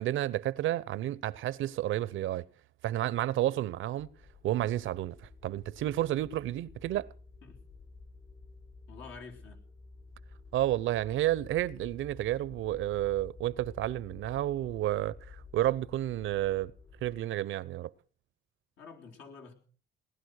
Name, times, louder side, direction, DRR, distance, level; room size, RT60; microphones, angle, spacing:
voice 1, 0.0-2.4 2.8-4.1 4.4-5.2 5.4-7.1 10.5-16.7 17.0-17.9, right 14 dB, 80° right, 0.7 m, -31 dB
sound 1, 4.0-17.2, left 4 dB, 60° left, 3.0 m, -52 dB
voice 2, 8.9-9.6 18.8-19.5, left 5 dB, 80° left, 3.8 m, -48 dB
18.5 x 11.5 x 6.4 m
cardioid pair, 90°, 20 cm